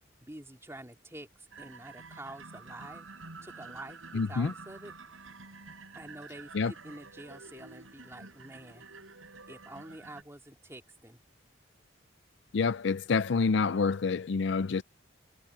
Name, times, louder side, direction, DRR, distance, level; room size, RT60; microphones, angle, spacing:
voice 1, 0.2-3.1 3.4-4.9 5.9-8.9 9.5-11.2, right 1 dB, 15° right, 3.3 m, -47 dB
sound 1, 1.5-10.2, right 4 dB, 85° right, 6.0 m, -49 dB
voice 2, 4.1-4.5 6.5-6.7 12.5-14.8, left 4 dB, 60° left, 0.4 m, -27 dB
head